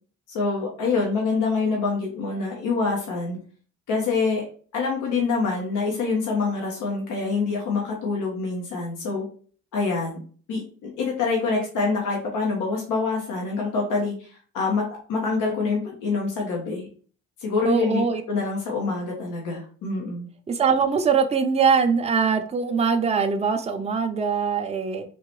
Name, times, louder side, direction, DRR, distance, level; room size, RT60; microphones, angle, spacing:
voice 1, 0.3-3.4 3.9-4.4 4.7-9.3 9.7-10.2 10.5-16.9 17.4-18.0 18.3-20.3, left 4 dB, 90° left, -1 dB, 1.2 m, -26 dB
voice 2, 17.6-18.2 20.5-25.0, right 5 dB, 20° right, 6 dB, 0.5 m, -22 dB
3.8 x 2.9 x 3.0 m, 0.42 s
cardioid pair, 90°, 30 cm